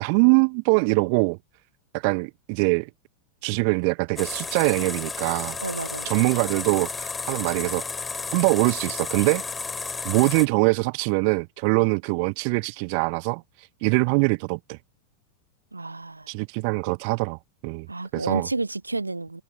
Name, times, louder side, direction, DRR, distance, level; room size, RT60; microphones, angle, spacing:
voice 1, 0.0-1.4 1.9-2.9 3.4-5.6 6.0-7.8 8.3-9.4 10.0-13.4 13.8-14.8 16.3-17.9 18.1-18.5, right 37 dB, 45° right, 0.9 m, -23 dB
sound 1, 4.2-10.5, left 4 dB, 15° left, 2.7 m, -32 dB
voice 2, 5.6-6.1 15.7-16.3 17.9-19.4, right 3 dB, 80° right, 1.4 m, -30 dB
figure-of-eight pair, 90°, 0 cm